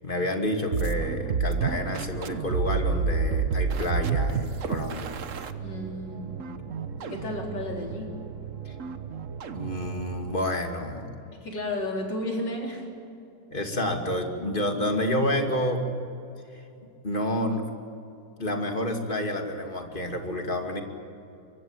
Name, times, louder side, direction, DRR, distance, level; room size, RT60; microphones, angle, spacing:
voice 1, 0.0-5.1 8.7-8.8 9.5-11.1 13.5-15.8 17.0-17.7 18.4-20.8, left 1 dB, 30° left, 4 dB, 2.7 m, -29 dB
sound 1, 0.7-10.4, right 5 dB, 50° right, 1.3 m, -30 dB
voice 2, 5.6-6.3 7.0-8.1 11.3-12.8, left 1 dB, 90° left, 0 dB, 4.8 m, -32 dB
24.0 x 24.0 x 9.1 m, 2.7 s
omnidirectional pair, 1.9 m